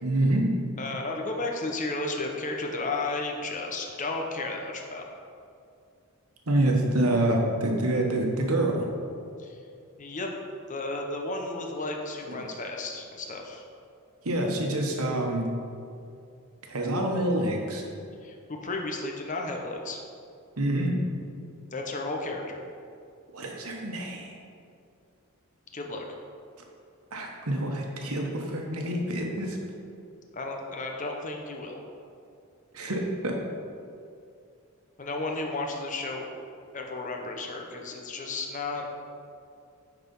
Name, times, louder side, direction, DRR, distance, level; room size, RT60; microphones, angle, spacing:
voice 1, 0.0-0.6 6.5-8.9 14.2-15.5 16.7-17.8 20.6-21.0 23.3-24.3 27.1-29.6 32.7-33.4, right 1 dB, 80° right, 1 dB, 1.3 m, -27 dB
voice 2, 0.8-5.1 9.4-9.6 10.0-10.3 10.7-13.7 18.2-20.0 21.7-22.6 25.7-26.0 30.3-31.8 35.0-36.3 36.7-38.9, left 2 dB, 35° left, 2 dB, 0.8 m, -33 dB
9.7 x 4.1 x 5.4 m, 2.4 s
head